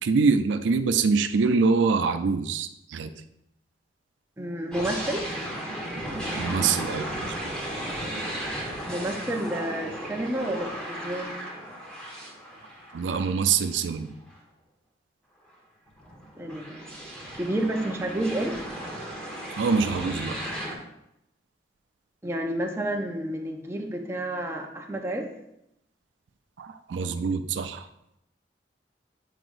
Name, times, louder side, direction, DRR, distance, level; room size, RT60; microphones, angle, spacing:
voice 1, 0.0-3.1 6.4-7.6 12.9-14.1 19.5-20.4 26.6-27.9, right 5 dB, 85° right, 9 dB, 0.4 m, -25 dB
voice 2, 4.4-5.3 8.9-11.4 16.4-16.9 17.3-18.6 22.2-25.3, right 1 dB, 15° right, 1 dB, 0.5 m, -30 dB
sound 1, 4.7-13.8 14.3-14.4 15.9-20.8, right 1 dB, 5° left, 1.0 m, -35 dB
7.8 x 4.9 x 2.5 m, 0.83 s
head